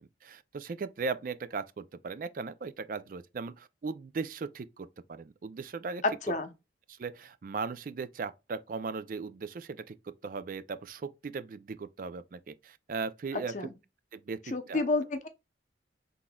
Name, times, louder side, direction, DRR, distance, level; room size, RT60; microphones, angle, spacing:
voice 1, 0.0-6.3 6.9-13.7 14.1-14.8, right 4 dB, 50° right, 0.4 m, -38 dB
voice 2, 14.5-15.3, left 3 dB, 45° left, 0.7 m, -30 dB
5.9 x 3.6 x 2.2 m
head